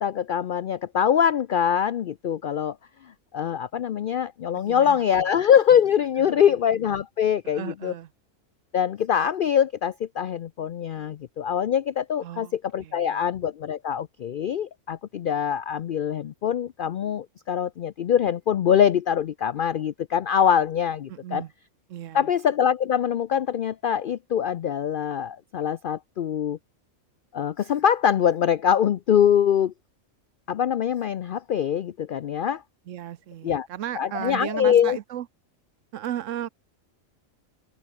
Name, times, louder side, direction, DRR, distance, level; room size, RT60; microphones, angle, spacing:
voice 1, 0.0-2.8 3.3-7.9 8.7-21.4 22.1-26.6 27.3-29.7 30.5-32.6 33.4-33.7 34.0-35.0, left 8 dB, 80° left, 0.4 m, -23 dB
voice 2, 4.5-5.0 5.3-5.4 6.2-6.4 7.4-8.1 12.2-12.5 12.8-13.2 21.1-21.5 21.9-22.3 32.9-35.3 35.9-36.5, right 11 dB, 65° right, 1.0 m, -35 dB
omnidirectional pair, 1.5 m